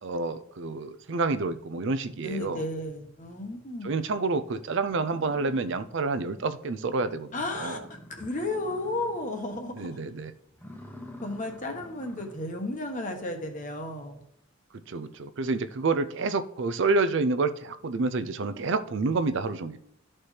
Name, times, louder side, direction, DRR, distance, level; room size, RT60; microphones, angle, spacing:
voice 1, 0.0-2.7 3.8-7.3 7.6-7.8 9.8-10.3 14.9-19.8, right 3 dB, 60° right, 12 dB, 0.5 m, -28 dB
voice 2, 2.2-4.0 7.3-10.0 11.2-14.2, left 2 dB, 40° left, 3 dB, 1.2 m, -33 dB
sound 1, 4.9-6.3 6.6-6.7 7.1-7.2 7.4-9.4 9.7-10.0 10.5-12.5, left 1 dB, 10° left, 0.8 m, -48 dB
13.0 x 4.4 x 3.3 m, 0.73 s
head